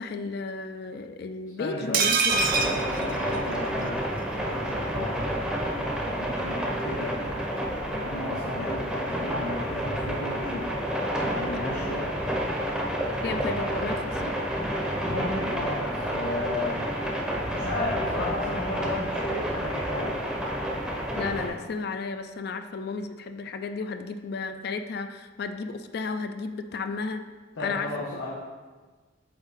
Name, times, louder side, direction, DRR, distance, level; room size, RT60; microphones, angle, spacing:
voice 1, 0.0-2.5 13.2-14.3 21.2-27.2 27.6-28.2, left 4 dB, 55° left, 8 dB, 0.3 m, -33 dB
voice 2, 1.6-2.0 2.5-4.0 4.3-5.3 5.7-10.7 11.2-12.1 15.0-16.9 17.5-20.2 27.5-28.3, left 2 dB, 80° left, -6 dB, 1.1 m, -34 dB
sound 1, 1.9-3.9 4.2-4.3 4.6-4.7, right 4 dB, 50° right, 0.6 m, -25 dB
sound 2, 2.3-21.5, equal, 5° right, 0.6 m, -30 dB
7.7 x 3.5 x 4.1 m, 1.4 s
head